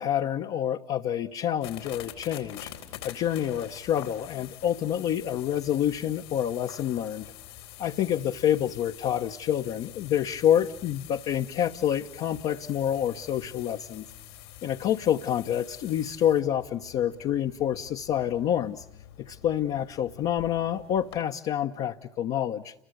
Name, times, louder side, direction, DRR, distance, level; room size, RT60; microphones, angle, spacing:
voice 1, 0.0-2.7 3.0-7.3 7.8-14.0 14.6-18.8 19.2-22.7, left 10 dB, 55° left, 0 dB, 1.2 m, -27 dB
sound 1, 1.6-21.2, left 12 dB, 85° left, 3.9 m, -46 dB
30.0 x 23.0 x 8.1 m, 0.72 s
hypercardioid pair, 75°, 13 cm